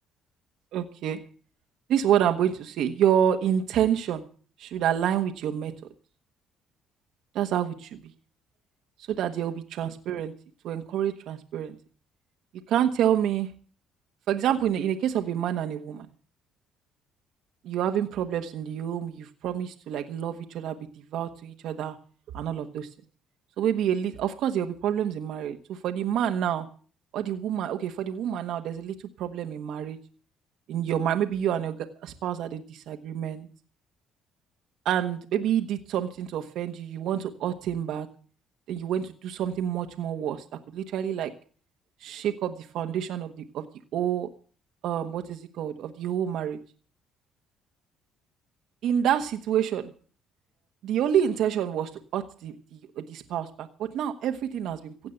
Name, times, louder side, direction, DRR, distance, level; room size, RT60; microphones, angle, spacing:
voice 1, 0.7-1.2 1.9-4.3 4.6-5.7 7.3-8.0 9.1-10.3 10.6-11.8 12.7-13.5 14.3-16.1 17.6-20.8 21.1-22.0 22.3-22.9 23.6-26.7 27.1-30.0 30.7-31.8 32.0-33.5 34.8-38.1 38.7-40.4 40.7-41.3 42.0-43.7 43.9-44.3 44.8-46.6 48.8-49.9 50.8-54.9, right 10 dB, 70° right, 5 dB, 1.3 m, -28 dB
16.5 x 8.5 x 8.0 m, 0.43 s
cardioid pair, 100°, 0 cm